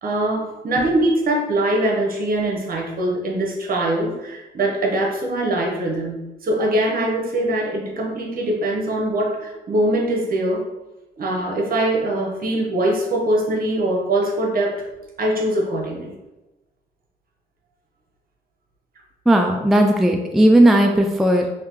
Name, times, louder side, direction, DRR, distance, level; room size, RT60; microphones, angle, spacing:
voice 1, 0.0-10.6 11.2-14.8 15.2-16.2, right 1 dB, 50° right, -1 dB, 0.9 m, -22 dB
voice 2, 19.3-21.5, right 1 dB, ahead, 3 dB, 0.3 m, -15 dB
2.8 x 2.7 x 3.6 m, 1.0 s
supercardioid pair, 70°, 19 cm